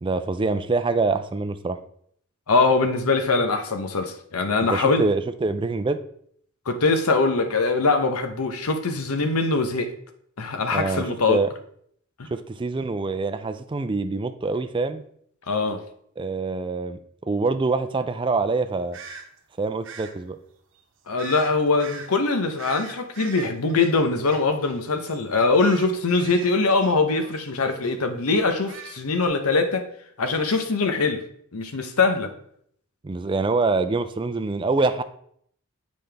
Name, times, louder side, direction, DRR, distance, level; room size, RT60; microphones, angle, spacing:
voice 1, 0.0-1.8 4.7-6.0 10.7-11.5 12.3-15.0 16.2-19.0 19.6-20.4 33.0-35.0, right 3 dB, 20° right, 10 dB, 0.4 m, -25 dB
voice 2, 2.5-5.1 6.7-9.9 10.4-11.4 15.5-15.8 21.1-29.9 30.2-31.2 31.5-32.3, left 3 dB, 85° left, 7 dB, 0.8 m, -22 dB
sound 1, 18.9-19.2 19.8-20.1 21.2-21.5 21.8-22.1 22.6-24.8 25.1-25.2 25.6-27.4 27.8-28.0 28.3-29.3, right 5 dB, 60° right, 0.9 m, -41 dB
7.6 x 5.2 x 3.4 m, 0.66 s
head